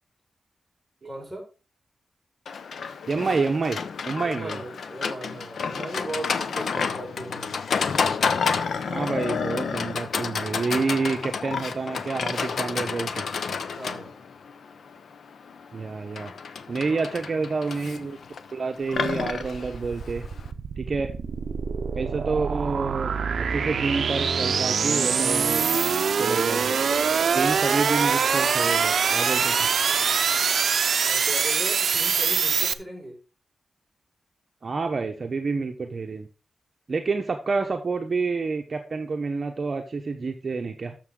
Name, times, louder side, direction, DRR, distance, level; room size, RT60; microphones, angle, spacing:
voice 1, 1.0-1.4 4.2-7.5 13.8-14.2 16.9-17.0 31.0-33.2, right 1 dB, ahead, -1 dB, 5.4 m, -37 dB
Livestock farm animals working animals, 2.5-20.5, left 5 dB, 75° left, 0.7 m, -30 dB
voice 2, 3.1-3.8 4.0-4.6 8.8-13.3 15.7-16.3 16.7-18.2 18.5-20.2 20.8-21.1 21.9-23.1 23.5-25.7 26.2-26.8 27.3-29.7 34.6-36.3 36.9-40.9, right 4 dB, 45° right, 4 dB, 0.9 m, -28 dB
sound 1, 19.2-32.7, right 6 dB, 65° right, 0.6 m, -24 dB
12.5 x 6.7 x 3.8 m, 0.33 s
wide cardioid pair, 125°, 0 cm